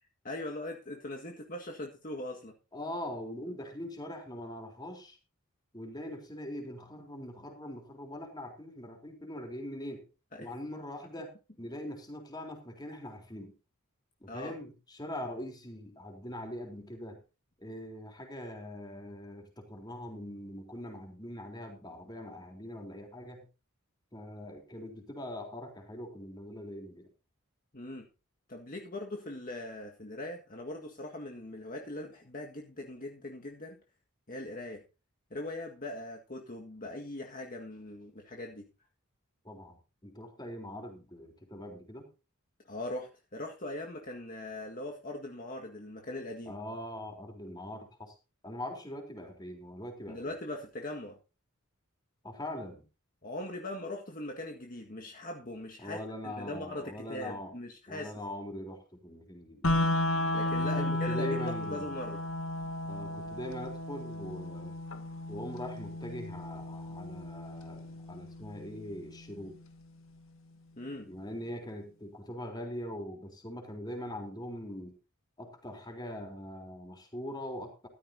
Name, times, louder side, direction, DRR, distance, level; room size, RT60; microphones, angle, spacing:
voice 1, 0.2-2.5 10.4-10.5 14.3-14.5 27.7-28.1 28.5-33.8 34.3-34.8 35.3-38.7 42.7-46.6 50.1-51.2 53.2-58.1 60.3-62.2 70.8-71.1, left 1 dB, 40° left, 1 dB, 1.8 m, -40 dB
voice 2, 2.7-5.2 5.7-10.0 10.4-13.5 14.2-17.2 17.6-23.5 24.1-27.1 39.4-42.1 46.5-48.1 48.4-50.2 52.2-52.8 55.8-57.5 57.9-59.8 60.6-61.9 62.8-64.7 65.3-69.6 71.0-75.0 75.4-77.9, left 1 dB, 20° left, 3 dB, 3.7 m, -42 dB
sound 1, 59.6-69.6, left 1 dB, 65° left, 1.9 m, -34 dB
15.0 x 13.0 x 2.8 m, 0.31 s
head